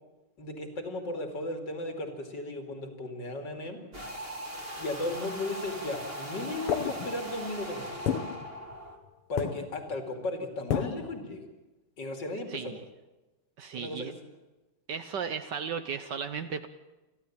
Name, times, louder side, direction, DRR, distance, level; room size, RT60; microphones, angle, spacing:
voice 1, 0.4-3.9 4.8-8.0 9.3-11.5 12.0-12.8 13.7-14.1, left 2 dB, 55° left, 5 dB, 3.2 m, -35 dB
sound 1, 3.9-9.0, right 1 dB, 25° right, 3.1 m, -40 dB
sound 2, 6.7-7.5 8.1-9.1 9.4-10.0 10.7-11.2, left 8 dB, 90° left, 2.0 m, -32 dB
voice 2, 12.5-12.8 13.6-14.1 14.9-16.7, right 6 dB, 60° right, 10 dB, 1.3 m, -35 dB
28.5 x 12.0 x 8.8 m, 1.1 s
omnidirectional pair, 2.4 m